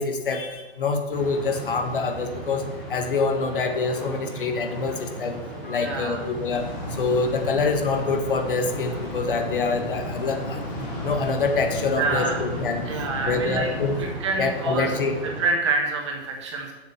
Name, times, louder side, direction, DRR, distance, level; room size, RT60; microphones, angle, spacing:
voice 1, 0.0-10.6 11.0-12.8 13.2-14.0 14.4-15.2, left 4 dB, 55° left, 6 dB, 1.5 m, -26 dB
sound 1, 1.1-15.5, right 1 dB, 5° left, 0.8 m, -37 dB
voice 2, 5.7-6.2 11.9-12.4 12.8-13.7 14.2-14.9 15.4-16.7, right 3 dB, 25° right, 0 dB, 1.6 m, -26 dB
sound 2, 6.5-14.1, left 1 dB, 30° left, 3.8 m, -34 dB
7.5 x 7.2 x 8.0 m, 1.1 s
hypercardioid pair, 180°, 33 cm